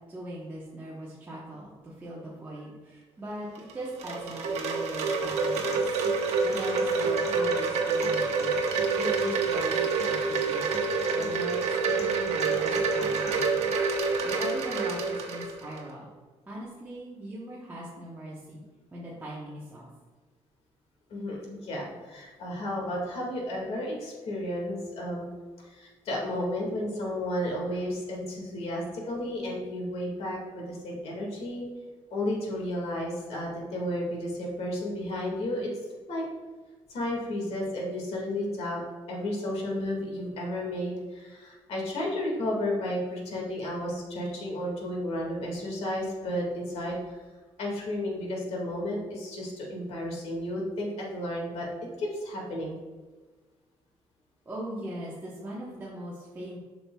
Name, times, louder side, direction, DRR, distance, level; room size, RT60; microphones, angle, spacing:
voice 1, 0.1-3.5 3.7-8.6 8.9-10.7 11.1-13.7 14.2-16.1 16.5-18.6 18.9-19.9 54.4-56.6, right 1 dB, 20° right, -7 dB, 1.0 m, -40 dB
Wind chime, 3.6-15.8, right 4 dB, 70° right, 0.9 m, -27 dB
sound 1, 5.3-13.3, equal, 25° left, 1.0 m, -46 dB
voice 2, 21.1-25.3 25.6-31.6 32.1-35.7 36.1-36.2 36.9-38.8 39.1-47.0 47.6-51.7 52.0-52.7, left 1 dB, 65° left, -2 dB, 1.9 m, -32 dB
7.6 x 5.8 x 2.3 m, 1.3 s
cardioid pair, 155°, 11 cm